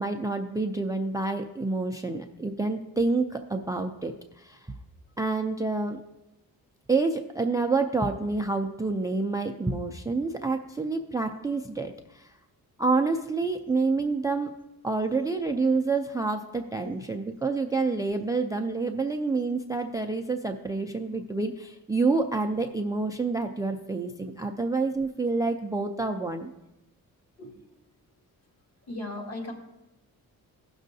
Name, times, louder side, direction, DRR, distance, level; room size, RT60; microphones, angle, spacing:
voice 1, 0.0-4.7 5.2-6.0 6.9-12.3 12.8-14.5 14.8-26.5, right 3 dB, 10° right, 6 dB, 0.3 m, -28 dB
voice 2, 28.9-29.5, left 2 dB, 45° left, -1 dB, 2.0 m, -37 dB
16.0 x 6.3 x 2.7 m, 0.95 s
wide cardioid pair, 145°, 35 cm